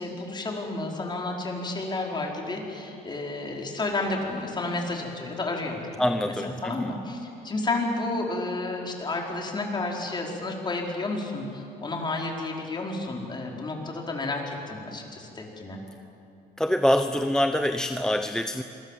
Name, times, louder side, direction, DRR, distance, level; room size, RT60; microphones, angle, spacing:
voice 1, 0.0-15.8, left 2 dB, 25° left, 0 dB, 4.9 m, -31 dB
voice 2, 6.0-6.9 16.6-18.6, left 1 dB, 5° left, 8 dB, 0.8 m, -25 dB
27.0 x 22.0 x 7.6 m, 2.7 s
cardioid pair, 110°, 17 cm